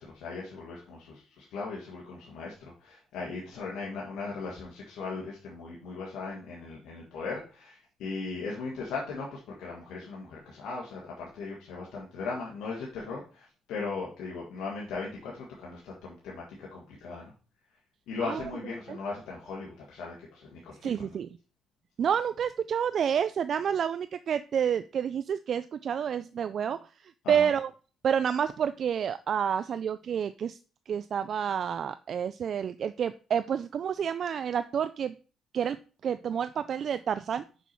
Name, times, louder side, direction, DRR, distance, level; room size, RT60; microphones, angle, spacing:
voice 1, 0.0-17.3 18.1-21.2 27.2-27.5, left 4 dB, 85° left, -3 dB, 1.6 m, -38 dB
voice 2, 20.8-21.3 22.0-26.8 27.3-27.7 28.0-30.6 30.9-35.1 35.5-35.8 36.0-37.4, right 8 dB, 60° right, 12 dB, 0.3 m, -29 dB
6.1 x 5.5 x 4.4 m, 0.38 s
cardioid pair, 90°, 0 cm